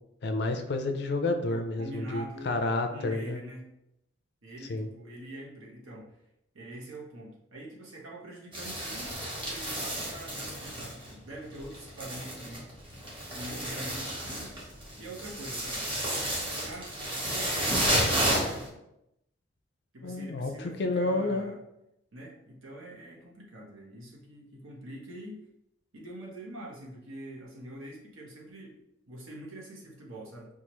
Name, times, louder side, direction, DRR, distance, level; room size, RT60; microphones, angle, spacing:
voice 1, 0.2-3.4 4.7-4.9 20.0-21.5, left 2 dB, 55° left, 6 dB, 0.4 m, -30 dB
voice 2, 1.5-3.6 4.4-6.1 6.5-12.6 13.3-14.6 15.0-15.8 16.5-18.7 19.9-21.6 22.1-25.4 25.9-28.8 29.1-30.5, right 1 dB, 90° right, -3 dB, 1.1 m, -44 dB
sound 1, 8.5-11.3 11.5-18.7, right 1 dB, 25° right, 0.9 m, -32 dB
4.7 x 2.4 x 2.9 m, 0.84 s
head